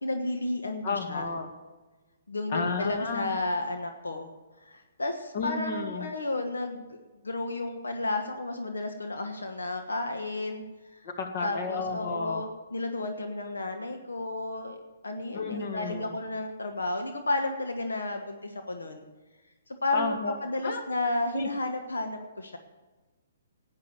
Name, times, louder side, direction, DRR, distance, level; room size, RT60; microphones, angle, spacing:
voice 1, 0.0-1.3 2.3-4.3 4.6-7.0 7.2-10.6 10.9-11.0 11.4-14.8 15.0-19.0 19.8-22.6, left 2 dB, 90° left, 5 dB, 1.3 m, -32 dB
voice 2, 0.8-1.5 2.5-3.3 5.3-6.1 11.0-12.5 15.3-16.2 19.9-20.4 20.6-20.8 21.3-21.5, left 4 dB, 50° left, 5 dB, 2.1 m, -32 dB
12.5 x 9.0 x 7.8 m, 1.2 s
hypercardioid pair, 135°, 0 cm